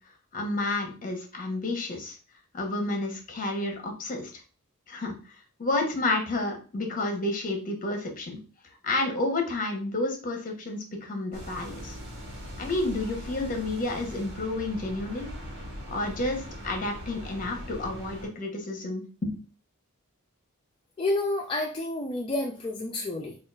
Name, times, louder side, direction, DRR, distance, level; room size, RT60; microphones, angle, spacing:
voice 1, 0.3-2.1 2.5-4.3 4.9-5.1 5.6-8.4 8.8-12.0 12.6-15.3 15.9-19.4, left 2 dB, 40° left, 2 dB, 0.9 m, -30 dB
sound 1, 11.3-18.3, equal, 55° right, 1.3 m, -40 dB
voice 2, 21.0-23.4, left 2 dB, 25° left, -1 dB, 0.4 m, -29 dB
4.6 x 2.4 x 2.3 m, 0.36 s
head